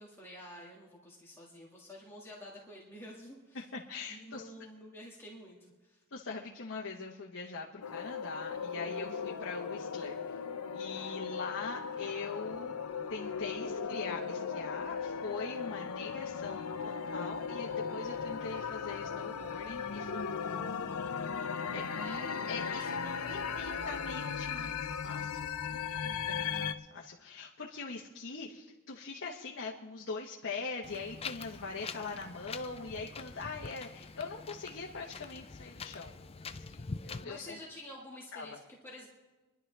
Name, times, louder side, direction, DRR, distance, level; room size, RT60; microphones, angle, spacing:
voice 1, 0.0-3.6 4.1-6.0 10.9-11.2 21.9-22.4 22.7-23.8 37.2-39.1, left 1 dB, 10° left, -4 dB, 1.9 m, -50 dB
voice 2, 3.5-4.5 6.1-10.4 10.7-12.7 13.1-20.8 21.7-22.9 23.3-37.6 38.3-38.6, left 4 dB, 55° left, -2 dB, 1.2 m, -42 dB
sound 1, 7.8-26.7, left 6 dB, 75° left, 0.7 m, -37 dB
Wind, 30.8-37.2, left 4 dB, 25° left, 0.5 m, -45 dB
26.5 x 11.0 x 3.4 m, 1.2 s
head